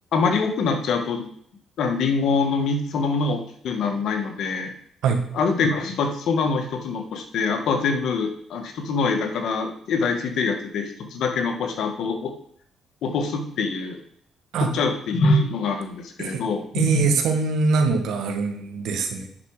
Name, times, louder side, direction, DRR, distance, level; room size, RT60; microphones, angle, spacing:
voice 1, 0.1-1.2 1.8-4.7 5.3-12.3 13.0-14.0 14.6-17.1, left 4 dB, 75° left, 5 dB, 1.7 m, -24 dB
voice 2, 16.7-19.3, right 4 dB, 80° right, 5 dB, 1.8 m, -23 dB
9.7 x 6.0 x 5.0 m, 0.62 s
cardioid pair, 90°, 0 cm